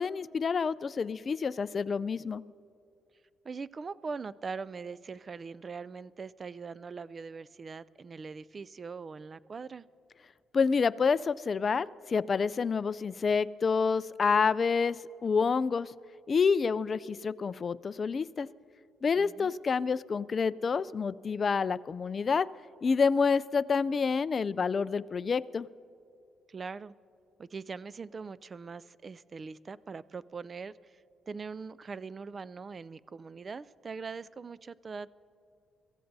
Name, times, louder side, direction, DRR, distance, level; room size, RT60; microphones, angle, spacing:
voice 1, 0.0-2.4 10.5-15.9 16.3-18.5 19.0-22.5 22.8-25.7, left 5 dB, 40° left, 16 dB, 0.3 m, -28 dB
voice 2, 3.4-9.9 19.2-19.5 26.5-26.9 27.4-35.1, right 5 dB, 35° right, 19 dB, 0.3 m, -42 dB
24.0 x 15.0 x 2.7 m, 2.5 s
cardioid pair, 90°, 0 cm